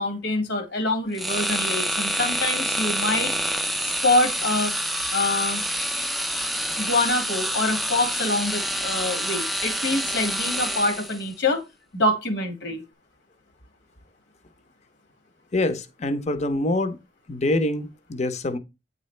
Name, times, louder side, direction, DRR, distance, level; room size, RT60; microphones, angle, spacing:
voice 1, 0.0-3.3 3.8-4.7 5.1-5.6 6.8-11.6 11.9-12.8, left 2 dB, 80° left, 1.6 m, -25 dB
sound 1, 1.1-11.3, equal, ahead, 0.4 m, -27 dB
voice 2, 15.5-17.0 17.3-18.6, left 2 dB, 40° left, 0.6 m, -25 dB
8.7 x 3.9 x 3.2 m
head